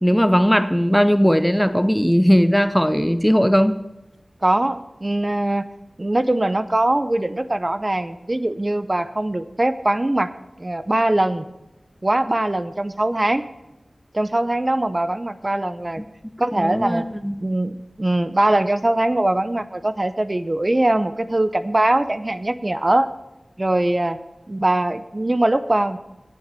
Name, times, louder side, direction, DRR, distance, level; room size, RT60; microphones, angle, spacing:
voice 1, 0.0-3.8 16.5-17.5, equal, 5° left, 12 dB, 0.6 m, -18 dB
voice 2, 4.4-5.7 6.0-10.3 10.6-11.4 12.0-13.4 14.1-16.0 16.4-17.1 17.4-23.1 23.6-24.2 24.5-26.0, right 1 dB, 40° right, 12 dB, 0.7 m, -21 dB
9.4 x 7.9 x 8.3 m, 0.96 s
wide cardioid pair, 45°, 0 cm